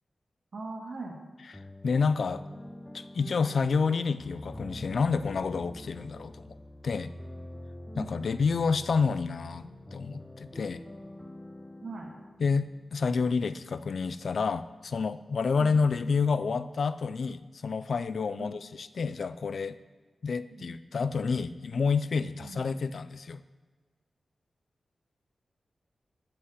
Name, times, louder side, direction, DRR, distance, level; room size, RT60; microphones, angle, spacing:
voice 1, 0.5-1.2 3.1-3.3 7.9-8.1 11.8-12.1 15.6-15.8 18.4-18.6 20.5-20.7 22.4-22.6, right 3 dB, 65° right, 0 dB, 1.9 m, -40 dB
voice 2, 1.5-2.4 2.9-6.5 6.8-7.1 8.0-10.8 12.4-19.8 20.2-23.4, left 5 dB, 70° left, 14 dB, 0.4 m, -29 dB
sound 1, 1.5-13.2, left 1 dB, 10° left, 0.8 m, -45 dB
8.4 x 5.7 x 7.9 m, 1.4 s
wide cardioid pair, 85°, 0 cm